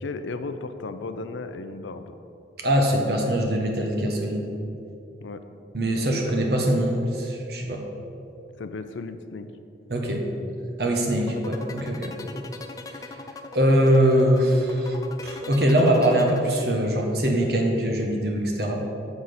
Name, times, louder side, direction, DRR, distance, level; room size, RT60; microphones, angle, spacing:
voice 1, 0.0-2.1 5.2-5.4 8.6-9.5, left 3 dB, 85° left, 9 dB, 0.5 m, -35 dB
voice 2, 2.6-4.5 5.7-7.8 9.9-10.2 10.8-12.1 12.9-13.1 13.5-15.0 15.2-18.8, right 1 dB, 60° right, 1 dB, 1.0 m, -22 dB
sound 1, 11.1-17.0, left 3 dB, 20° left, 0.3 m, -40 dB
7.1 x 4.1 x 6.5 m, 2.7 s
head